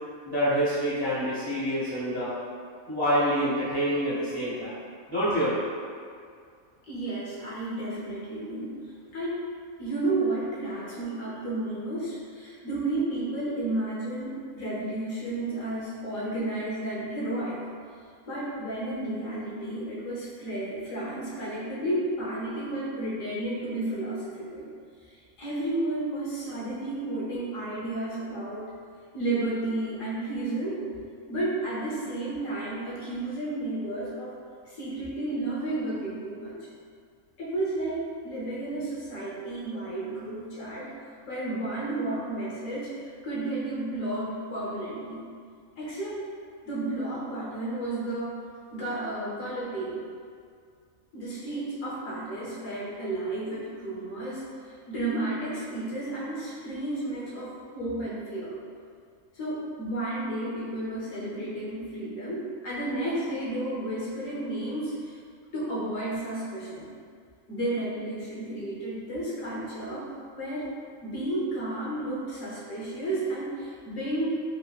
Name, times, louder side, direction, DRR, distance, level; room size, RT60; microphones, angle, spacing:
voice 1, 0.2-2.3 2.9-4.7 5.1-5.7, equal, 30° right, -12 dB, 0.5 m, -26 dB
voice 2, 6.8-8.7 9.1-9.5 9.8-17.6 18.3-24.7 25.0-28.7 29.1-30.8 31.3-34.3 34.7-36.7 37.4-40.9 41.3-45.2 45.8-46.2 46.6-48.3 48.7-50.0 51.1-58.5 59.3-65.2 65.5-66.9 67.5-70.1 70.4-70.7 71.0-74.4, right 2 dB, 70° left, -7 dB, 1.1 m, -32 dB
3.2 x 2.4 x 2.3 m, 2.1 s
omnidirectional pair, 1.4 m